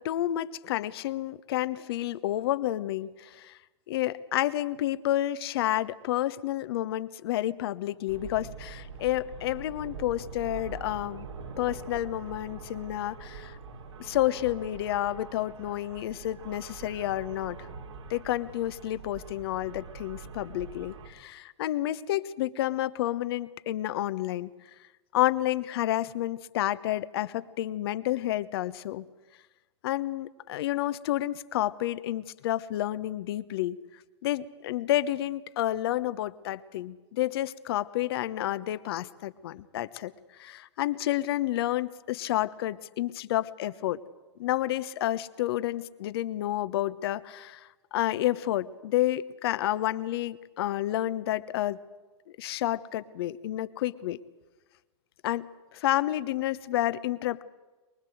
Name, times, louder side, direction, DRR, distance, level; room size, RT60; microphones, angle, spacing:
voice 1, 0.0-3.5 3.9-11.3 11.6-13.6 14.0-17.6 18.1-24.5 25.1-29.0 29.8-33.8 34.2-40.1 40.4-44.0 44.4-51.8 52.4-54.2 55.2-57.4, left 14 dB, 55° left, 15 dB, 1.1 m, -30 dB
sound 1, 8.1-21.1, right 5 dB, 75° right, 3.7 m, -44 dB
23.5 x 22.5 x 7.9 m, 1.2 s
figure-of-eight pair, 100°, 15 cm